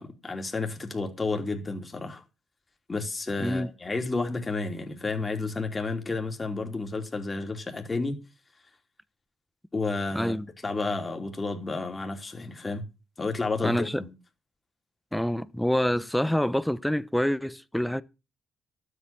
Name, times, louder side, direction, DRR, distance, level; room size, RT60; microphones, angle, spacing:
voice 1, 0.0-2.2 2.9-8.2 9.7-10.3 10.6-12.8 13.2-14.1, left 3 dB, 25° left, 3.1 m, -31 dB
voice 2, 10.1-10.4 13.6-14.0 15.1-18.0, equal, 5° left, 0.9 m, -26 dB
12.5 x 8.3 x 7.1 m
cardioid pair, 90°, 0 cm